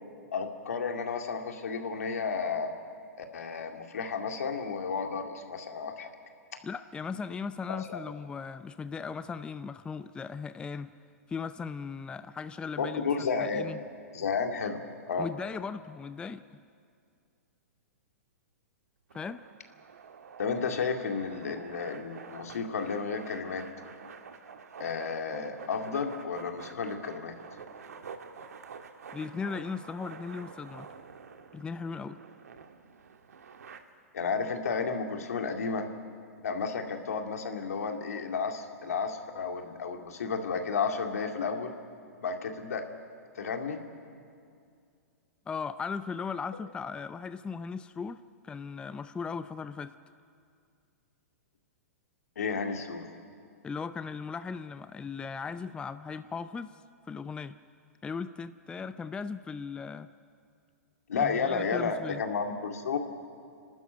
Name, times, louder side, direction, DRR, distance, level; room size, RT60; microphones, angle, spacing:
voice 1, 0.3-2.7 3.2-6.1 7.7-8.0 12.8-13.7 14.1-14.8 15.1-15.3 20.4-23.6 24.8-27.3 34.1-35.9 36.4-41.7 42.2-42.8 43.3-43.8 52.4-53.1 61.1-63.0, left 5 dB, 75° left, 4 dB, 2.3 m, -32 dB
voice 2, 6.6-10.9 11.3-13.8 15.2-16.4 19.1-19.4 29.1-30.9 31.5-32.2 45.5-49.9 53.6-56.8 57.1-57.6 58.0-60.1 61.2-62.2, left 5 dB, 10° left, 12 dB, 0.5 m, -38 dB
sound 1, 19.1-33.8, right 6 dB, 75° right, 1.7 m, -48 dB
29.5 x 12.5 x 9.3 m, 2.3 s
hypercardioid pair, 120°, 8 cm